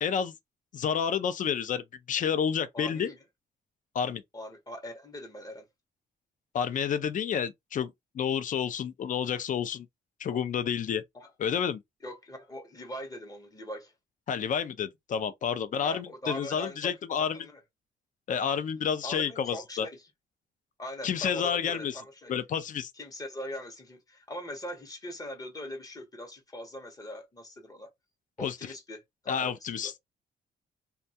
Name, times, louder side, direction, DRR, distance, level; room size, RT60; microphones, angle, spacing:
voice 1, 0.0-0.3 0.7-3.1 3.9-4.2 6.5-9.9 10.2-11.0 11.4-11.8 14.3-17.4 18.3-19.9 21.0-21.9 22.3-22.9 28.4-28.6 29.3-29.9, left 7 dB, 45° left, 0.4 m, -30 dB
voice 2, 2.7-3.2 4.3-5.6 11.1-11.3 12.0-13.9 15.8-17.6 19.0-20.1 20.8-22.3 22.9-27.9 28.4-30.0, equal, 20° left, 0.8 m, -41 dB
2.2 x 2.2 x 2.7 m
cardioid pair, 110°, 18 cm